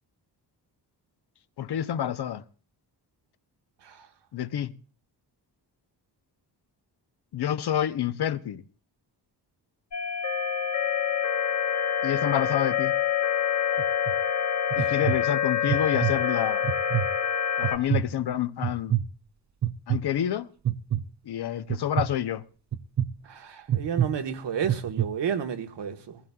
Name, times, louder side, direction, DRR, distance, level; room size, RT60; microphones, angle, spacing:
voice 1, 1.6-2.4 4.3-4.7 7.3-8.6 12.0-12.9 14.7-16.6 17.6-19.0 19.9-20.5 21.3-22.4, left 10 dB, 70° left, 0.8 m, -28 dB
sound 1, 9.9-17.8, left 8 dB, 40° left, 1.1 m, -26 dB
sound 2, 13.8-14.1 14.7-15.2 15.7-16.1 16.6-17.1 17.6-18.1 18.6-19.0 19.6-20.0 20.6-21.0 21.7-22.0 22.7-23.1 23.7-24.1 24.6-25.1, right 11 dB, 45° right, 0.6 m, -25 dB
voice 2, 23.3-26.2, right 8 dB, 90° right, 1.4 m, -31 dB
21.0 x 15.5 x 2.3 m
wide cardioid pair, 115°, 41 cm